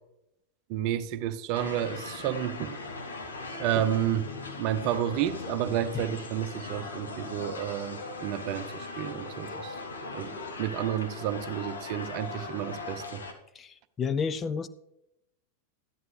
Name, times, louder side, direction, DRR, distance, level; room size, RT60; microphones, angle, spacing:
voice 1, 0.7-2.8 3.6-4.3 4.6-9.8 10.1-13.2, right 11 dB, 45° right, 12 dB, 0.6 m, -31 dB
sound 1, 1.5-13.3, left 3 dB, 70° left, 1.3 m, -39 dB
voice 2, 13.6-14.7, left 6 dB, 20° left, 12 dB, 0.5 m, -31 dB
14.0 x 11.0 x 3.3 m, 0.88 s
figure-of-eight pair, 90°, 0 cm